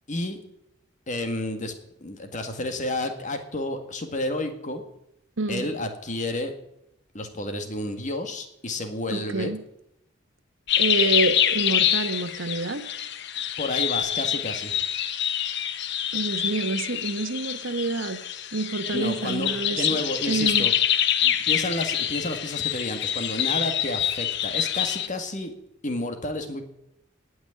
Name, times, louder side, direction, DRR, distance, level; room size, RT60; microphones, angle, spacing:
voice 1, 0.1-0.4 1.1-1.7 2.0-4.8 5.5-6.5 7.1-9.5 13.6-14.7 18.9-20.7 21.2-25.5 25.8-26.6, left 1 dB, 40° left, 6 dB, 1.9 m, -30 dB
voice 2, 5.4-5.7 9.1-9.6 10.8-12.9 16.1-18.2 18.5-19.9 20.3-20.7, right 3 dB, 70° right, 10 dB, 1.2 m, -27 dB
sound 1, 10.7-25.1, left 10 dB, 60° left, 0.9 m, -26 dB
18.5 x 6.4 x 9.4 m, 0.81 s
head